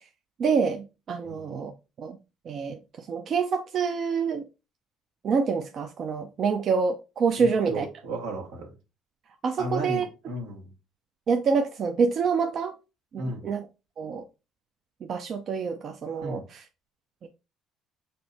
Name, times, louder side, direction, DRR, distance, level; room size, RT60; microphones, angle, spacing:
voice 1, 0.4-1.7 2.0-2.2 2.5-4.4 5.2-7.9 9.4-10.1 11.3-12.7 13.1-13.7 14.0-14.2 15.0-16.6 17.2-17.3, right 5 dB, 55° right, 0.5 m, -27 dB
voice 2, 7.4-8.7 9.6-10.7 13.2-13.5 16.2-16.5, right 1 dB, 90° right, 1.4 m, -34 dB
5.1 x 2.0 x 4.0 m
supercardioid pair, 80°, 0 cm